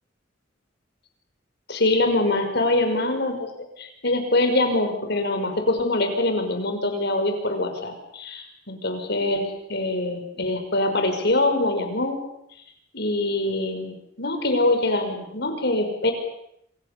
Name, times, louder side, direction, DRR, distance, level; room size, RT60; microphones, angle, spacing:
voice 1, 1.7-3.5 3.8-12.2 12.9-16.1, left 2 dB, 60° left, 6 dB, 5.9 m, -24 dB
27.5 x 26.5 x 7.0 m, 0.76 s
head